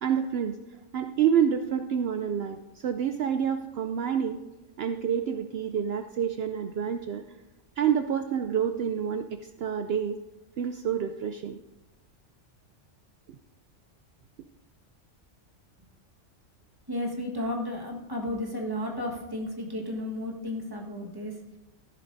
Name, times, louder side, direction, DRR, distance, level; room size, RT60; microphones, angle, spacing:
voice 1, 0.0-0.6 0.9-4.4 4.8-7.2 7.8-10.2 10.6-11.6, right 8 dB, 65° right, 7 dB, 0.7 m, -28 dB
voice 2, 16.9-21.3, left 1 dB, 20° right, -1 dB, 1.5 m, -33 dB
13.5 x 11.0 x 2.7 m, 1.0 s
omnidirectional pair, 1.3 m